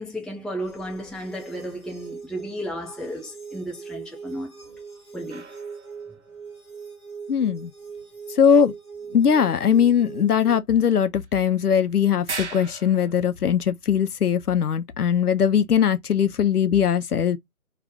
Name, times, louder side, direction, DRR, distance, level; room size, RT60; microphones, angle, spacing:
voice 1, 0.0-4.5 5.1-5.4, equal, ahead, 0.3 m, -33 dB
sound 1, 0.6-10.6, right 5 dB, 20° left, 0.8 m, -41 dB
sound 2, 5.3-6.6 11.2-11.3 11.6-11.7 12.3-13.2, right 4 dB, 50° right, 0.6 m, -37 dB
voice 2, 7.3-7.7 8.4-8.7 9.1-17.4, left 8 dB, 80° left, 0.7 m, -20 dB
2.5 x 2.4 x 3.4 m
figure-of-eight pair, 165°, 44 cm